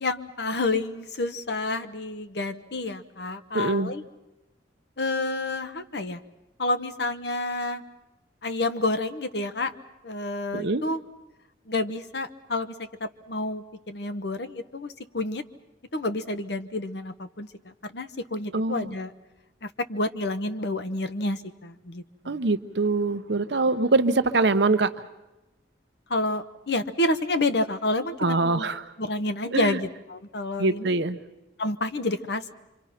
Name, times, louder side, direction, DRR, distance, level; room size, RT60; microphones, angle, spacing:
voice 1, 0.0-4.0 5.0-6.2 6.6-7.8 8.4-9.7 10.0-11.0 11.7-15.4 15.9-19.1 19.6-22.4 26.1-28.7 29.0-31.0 31.6-32.5, left 2 dB, 65° left, 10 dB, 1.0 m, -29 dB
voice 2, 3.5-3.9 10.5-10.8 18.5-18.9 22.3-24.9 28.2-28.8 29.5-29.8 30.6-31.2, right 3 dB, 70° right, 9 dB, 1.0 m, -23 dB
27.0 x 25.0 x 5.9 m, 1.0 s
head